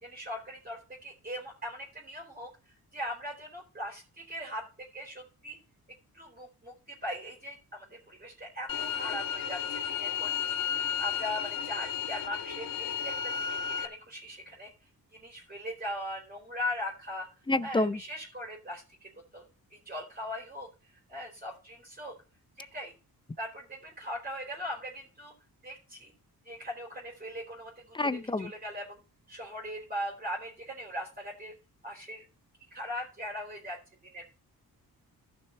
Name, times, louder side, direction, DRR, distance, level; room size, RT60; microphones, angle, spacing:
voice 1, 0.0-5.6 6.1-14.7 15.1-17.3 17.6-22.2 22.6-22.9 23.4-25.3 25.6-26.1 26.4-29.0 29.3-31.5 31.8-32.3 32.7-34.2, left 1 dB, 25° right, 3.5 m, -40 dB
sound 1, 8.7-13.9, left 8 dB, 65° left, 1.6 m, -33 dB
voice 2, 17.5-18.0 28.0-28.5, left 2 dB, 15° left, 0.4 m, -28 dB
14.5 x 6.6 x 4.2 m
wide cardioid pair, 145°, 37 cm